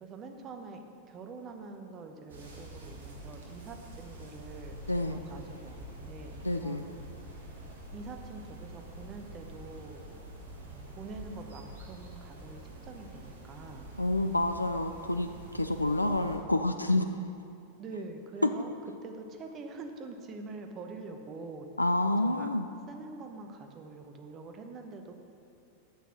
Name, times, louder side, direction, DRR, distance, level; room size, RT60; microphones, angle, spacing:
voice 1, 0.0-6.9 7.9-10.1 10.6-13.9 17.8-18.7 19.0-21.7 22.2-22.5 22.9-25.1, right 3 dB, 30° right, 5 dB, 1.0 m, -45 dB
sound 1, 2.3-16.4, right 1 dB, 65° right, 1.8 m, -47 dB
voice 2, 4.9-5.2 6.4-6.9 14.0-15.3 15.5-17.1 18.4-18.5 21.8-22.7, left 2 dB, 85° left, 8 dB, 0.4 m, -28 dB
9.2 x 7.2 x 6.1 m, 2.6 s
figure-of-eight pair, 90°, 0 cm